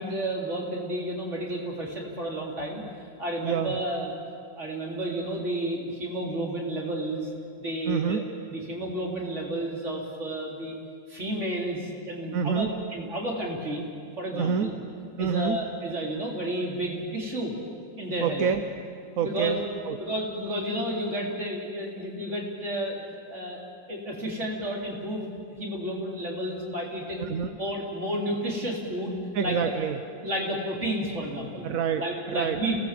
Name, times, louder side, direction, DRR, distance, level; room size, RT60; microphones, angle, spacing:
voice 1, 0.0-4.1 4.6-7.3 7.6-8.2 8.5-10.7 11.1-13.8 14.2-14.7 15.2-17.5 18.0-18.5 19.2-19.6 20.0-23.0 23.3-23.6 23.9-27.3 27.6-29.6 30.2-31.7 32.0-32.8, right 1 dB, 40° right, -2 dB, 4.2 m, -31 dB
voice 2, 3.4-3.8 7.8-8.3 12.3-12.7 14.3-14.7 15.2-15.6 18.2-18.6 19.2-19.6 19.9-20.0 27.2-27.6 29.3-30.0 31.6-32.6, right 7 dB, 55° right, 7 dB, 1.1 m, -27 dB
29.0 x 18.5 x 7.7 m, 2.3 s
omnidirectional pair, 2.0 m